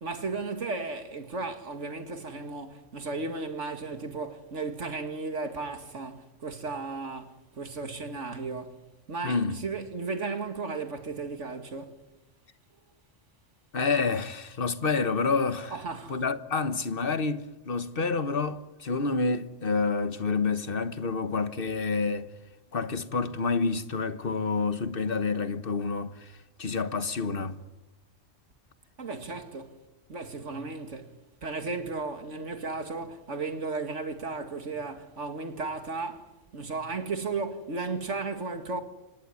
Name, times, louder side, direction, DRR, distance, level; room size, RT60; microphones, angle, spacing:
voice 1, 0.0-8.8 9.1-12.0 15.7-16.2 29.0-29.8 30.1-38.8, right 3 dB, 75° right, 2.4 m, -35 dB
voice 2, 9.2-9.6 13.7-15.8 16.1-22.3 22.7-26.3 26.6-27.6, left 4 dB, 50° left, 1.4 m, -28 dB
25.5 x 19.5 x 9.8 m
omnidirectional pair, 1.3 m